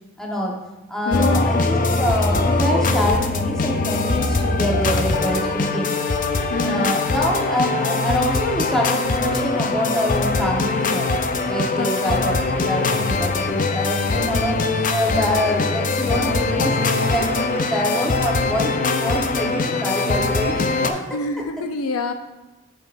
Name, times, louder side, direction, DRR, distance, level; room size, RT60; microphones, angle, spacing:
voice 1, 0.2-0.6 0.9-5.9 6.6-11.1 11.5-14.6 14.9-21.0, equal, 5° left, -3 dB, 1.2 m, -25 dB
voice 2, 1.1-1.7 6.5-6.9 11.8-12.3 21.1-22.1, left 2 dB, 90° left, 7 dB, 0.6 m, -26 dB
sound 1, 1.1-20.9, left 3 dB, 40° left, 0.5 m, -22 dB
10.0 x 5.8 x 2.6 m, 1.0 s
head